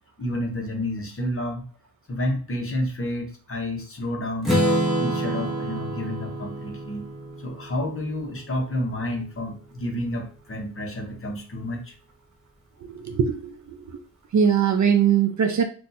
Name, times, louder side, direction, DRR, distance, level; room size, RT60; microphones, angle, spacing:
voice 1, 0.2-1.7 2.1-4.5 5.0-7.1 7.4-12.0, left 1 dB, 35° left, 2 dB, 0.9 m, -30 dB
Strum, 4.4-8.4, right 1 dB, ahead, 1.1 m, -27 dB
voice 2, 12.9-14.0 14.3-15.6, right 7 dB, 45° right, 6 dB, 0.4 m, -21 dB
2.6 x 2.3 x 4.0 m, 0.40 s
wide cardioid pair, 115°, 40 cm